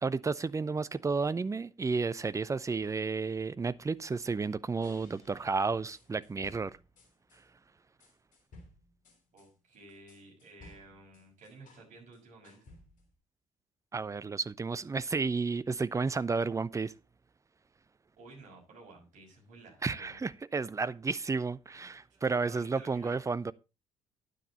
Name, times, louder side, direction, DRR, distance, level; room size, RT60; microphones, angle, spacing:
voice 1, 0.0-6.8 13.9-16.9 19.8-23.5, right 4 dB, 20° right, 0.6 m, -32 dB
sound 1, 4.8-7.4 8.0-11.9 12.1-13.2, left 2 dB, 50° left, 3.2 m, -57 dB
voice 2, 9.3-12.6 18.2-20.2 22.4-23.2, right 3 dB, 50° right, 6.1 m, -53 dB
10.0 x 9.5 x 4.0 m
figure-of-eight pair, 50°, 17 cm